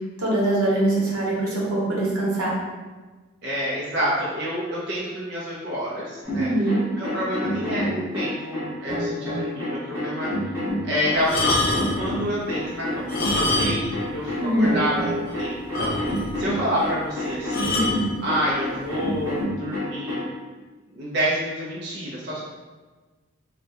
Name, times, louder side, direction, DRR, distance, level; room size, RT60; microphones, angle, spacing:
voice 1, 0.2-2.6 6.4-6.8 14.4-14.7 17.7-18.0, right 1 dB, 85° right, -5 dB, 0.9 m, -23 dB
voice 2, 3.4-6.5 7.0-10.3 10.8-17.8 18.2-20.2 20.9-22.4, equal, 50° right, -7 dB, 0.5 m, -28 dB
sound 1, 6.2-20.3, left 1 dB, 10° right, 0.9 m, -28 dB
sound 2, 11.2-12.1 13.0-14.0 14.3-14.4 14.9-15.0 15.3-15.4 15.7-16.4 17.5-18.0 18.8-19.1, left 2 dB, 45° left, 0.5 m, -25 dB
2.6 x 2.2 x 3.3 m, 1.3 s
head